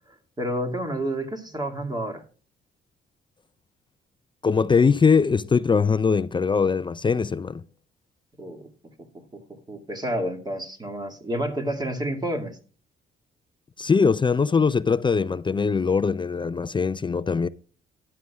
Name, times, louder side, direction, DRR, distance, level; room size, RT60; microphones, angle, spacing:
voice 1, 0.4-2.2 8.4-8.7 9.0-9.1 9.3-12.6, right 1 dB, 20° right, 2.3 m, -30 dB
voice 2, 4.4-7.6 13.8-17.5, left 5 dB, 25° left, 0.4 m, -21 dB
13.0 x 9.9 x 2.4 m
cardioid pair, 90°, 20 cm